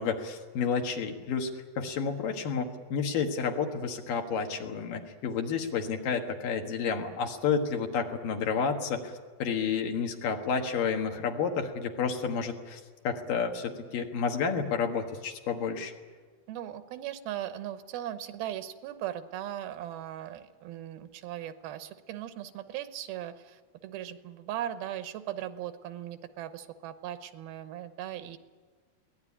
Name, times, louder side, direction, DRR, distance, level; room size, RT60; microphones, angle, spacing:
voice 1, 0.0-1.5 1.8-9.1 9.4-15.9, left 6 dB, 65° left, 4 dB, 3.2 m, -30 dB
voice 2, 16.5-28.4, right 11 dB, 85° right, 11 dB, 2.9 m, -38 dB
22.5 x 18.0 x 9.9 m, 1.4 s
omnidirectional pair, 4.3 m